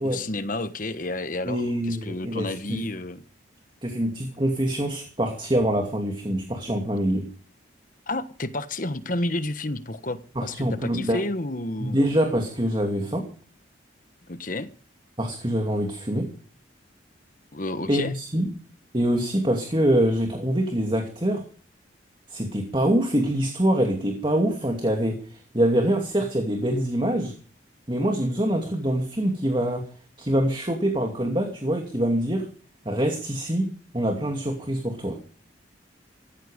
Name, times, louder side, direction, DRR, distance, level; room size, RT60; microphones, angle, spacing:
voice 1, 0.0-3.2 8.1-12.0 14.3-14.7 17.5-18.1, left 2 dB, 45° left, 1.2 m, -31 dB
voice 2, 1.5-2.8 3.8-7.3 10.4-11.3 11.8-13.3 15.2-16.3 17.9-18.5 18.9-21.4 22.3-27.3 27.9-29.8 30.2-32.5 32.8-35.3, right 1 dB, 25° right, 2.6 m, -25 dB
16.0 x 15.0 x 5.2 m
head